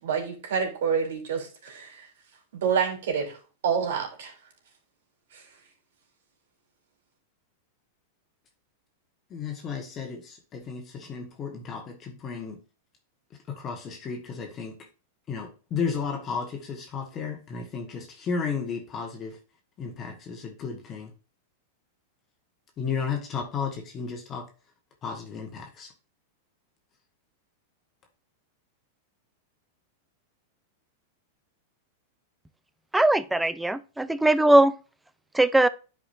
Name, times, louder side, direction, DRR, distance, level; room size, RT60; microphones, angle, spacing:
voice 1, 0.0-2.1 2.5-3.4 3.6-4.3 5.3-5.4, right 6 dB, 75° right, 3.3 m, -28 dB
voice 2, 9.3-12.6 13.5-14.8 15.3-19.4 19.8-21.1 22.8-24.5 25.0-25.9, left 5 dB, 25° left, 1.4 m, -33 dB
voice 3, 32.9-34.7 35.3-35.7, right 1 dB, 5° right, 0.4 m, -20 dB
9.9 x 5.0 x 2.6 m
supercardioid pair, 140°, 0 cm